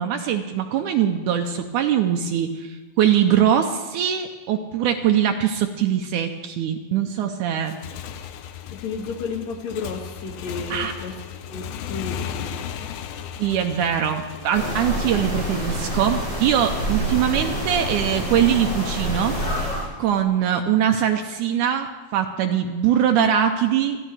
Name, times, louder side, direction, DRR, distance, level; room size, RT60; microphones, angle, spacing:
voice 1, 0.0-7.7 10.7-10.9 13.4-19.4 20.0-24.0, right 9 dB, 85° right, 5 dB, 1.8 m, -22 dB
Motorcycle / Engine, 7.5-15.2, left 9 dB, 85° left, 2.5 m, -35 dB
voice 2, 8.7-11.2 11.5-12.5, left 4 dB, 60° left, 2 dB, 2.1 m, -32 dB
sound 1, 14.5-19.8, equal, 30° left, 6.1 m, -27 dB
22.0 x 13.5 x 3.3 m, 1.2 s
omnidirectional pair, 4.2 m